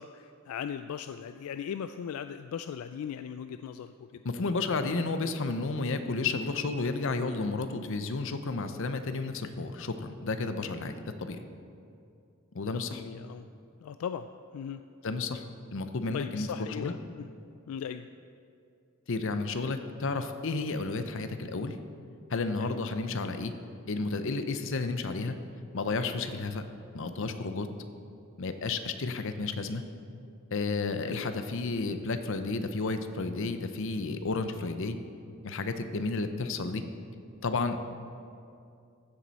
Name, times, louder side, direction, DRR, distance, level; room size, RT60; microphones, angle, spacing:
voice 1, 0.0-4.2 12.9-13.5 13.8-14.8 16.1-17.3 17.7-18.1 22.6-22.8 31.0-31.3, left 8 dB, 90° left, 11 dB, 0.3 m, -38 dB
voice 2, 4.2-11.4 12.5-13.0 15.0-15.4 15.7-16.5 16.8-16.9 19.1-21.8 22.3-23.5 23.9-25.4 25.7-26.6 26.9-27.7 28.4-29.8 30.5-35.0 35.4-36.8 37.4-37.8, left 3 dB, 65° left, 9 dB, 0.7 m, -32 dB
15.0 x 7.4 x 4.1 m, 2.5 s
head